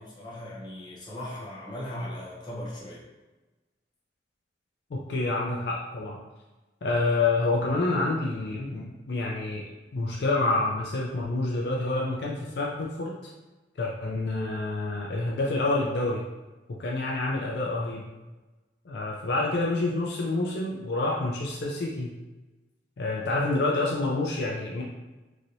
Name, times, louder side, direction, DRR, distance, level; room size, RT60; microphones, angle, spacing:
voice 1, 0.0-3.1, left 1 dB, 25° left, -7 dB, 0.9 m, -38 dB
voice 2, 4.9-6.2 6.8-9.6 9.9-13.3 13.8-16.2 16.7-18.1 18.8-22.1 23.0-24.8, left 2 dB, 65° left, -2 dB, 0.4 m, -28 dB
3.1 x 2.8 x 2.6 m, 1.1 s
head